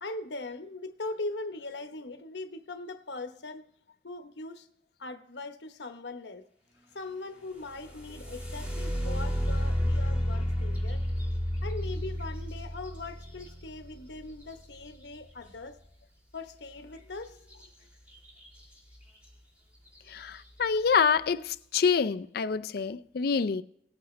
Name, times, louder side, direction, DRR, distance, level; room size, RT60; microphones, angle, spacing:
voice 1, 0.0-3.7 4.0-4.7 5.0-6.4 6.9-11.0 11.6-15.8 16.3-17.4, left 2 dB, 80° left, 1.0 m, -40 dB
sound 1, 7.6-15.4 17.5-17.6 18.1-18.6 19.2-19.3 19.9-20.2, equal, 10° right, 1.9 m, -32 dB
voice 2, 20.1-23.6, left 6 dB, 60° left, 0.4 m, -26 dB
19.0 x 8.5 x 3.2 m
head